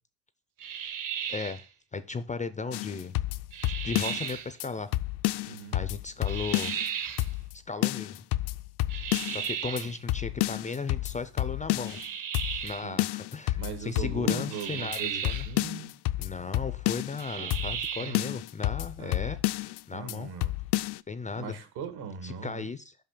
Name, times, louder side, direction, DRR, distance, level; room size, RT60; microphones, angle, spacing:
sound 1, 0.6-1.6 3.5-4.5 6.3-7.3 8.9-10.0 11.9-12.9 14.5-15.5 17.2-18.2, right 7 dB, 55° right, 1.0 m, -35 dB
voice 1, 1.3-1.7 1.9-3.1 3.7-4.9 5.4-6.7 7.7-8.2 9.3-12.0 12.6-15.5 16.2-20.3 21.1-21.6 22.2-23.0, left 4 dB, 20° left, 0.4 m, -36 dB
sound 2, 2.7-4.3 4.6-4.7 4.9-6.9 7.2-7.6 7.8-9.5 9.8-9.9 10.1-12.1 12.3-12.7 13.0-14.6 14.9-15.0 15.2-17.2 17.5-17.9 18.1-19.8 20.1-20.2 20.4-21.0, left 17 dB, 75° left, 0.5 m, -30 dB
voice 2, 5.5-5.8 9.7-9.9 12.8-13.0 13.6-16.0 17.4-17.5 18.0-18.3 19.0-19.4 19.9-20.5 21.4-22.7, right 6 dB, 70° right, 1.9 m, -40 dB
5.8 x 5.7 x 6.7 m
cardioid pair, 135°, 40 cm